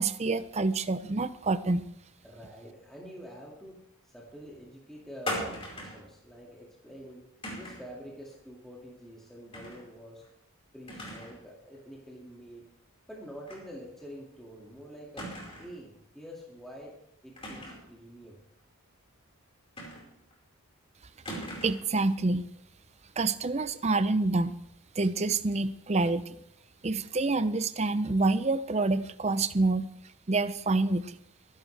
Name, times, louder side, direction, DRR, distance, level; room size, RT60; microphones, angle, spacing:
voice 1, 0.0-1.9 21.6-22.5 23.2-24.5 25.0-26.4 26.8-29.9 30.3-31.2, right 3 dB, 30° right, 13 dB, 0.5 m, -27 dB
voice 2, 2.2-3.8 4.0-7.3 7.6-10.2 10.7-12.6 13.1-15.3 15.6-16.9 17.2-18.4, equal, ahead, -4 dB, 2.1 m, -47 dB
sound 1, 5.3-6.1 7.4-7.9 9.5-9.8 10.2-10.3 10.9-11.4 11.7-11.8 13.5-13.7 14.0-14.1 15.2-15.8 17.4-17.9 19.8-20.3 21.2-21.9, equal, 25° left, 4.6 m, -39 dB
22.5 x 11.5 x 3.3 m, 0.77 s
head